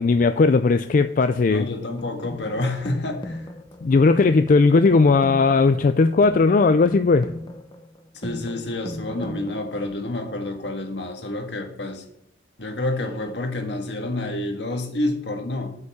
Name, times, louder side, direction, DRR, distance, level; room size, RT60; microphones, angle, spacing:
voice 1, 0.0-1.7 3.8-7.3, left 4 dB, 50° left, 0.4 m, -17 dB
voice 2, 1.5-3.5 8.1-12.0 12.6-15.8, left 2 dB, 75° left, 1.7 m, -28 dB
sound 1, 2.0-10.0, left 1 dB, 25° left, 0.9 m, -37 dB
8.1 x 5.4 x 7.0 m
head